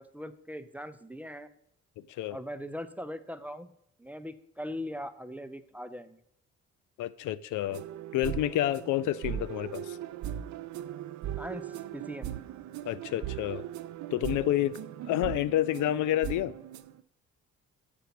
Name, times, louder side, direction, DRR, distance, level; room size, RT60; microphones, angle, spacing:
voice 1, 0.0-1.5 2.3-3.7 4.0-6.2 11.4-12.4, equal, 5° right, 10 dB, 0.5 m, -40 dB
voice 2, 7.0-7.8 8.1-10.0 12.9-13.6 14.1-14.7 15.1-16.5, left 13 dB, 80° left, 18 dB, 0.5 m, -29 dB
sound 1, 7.7-17.0, right 11 dB, 70° right, 0.5 m, -39 dB
6.8 x 5.1 x 5.8 m, 0.73 s
cardioid pair, 90°, 30 cm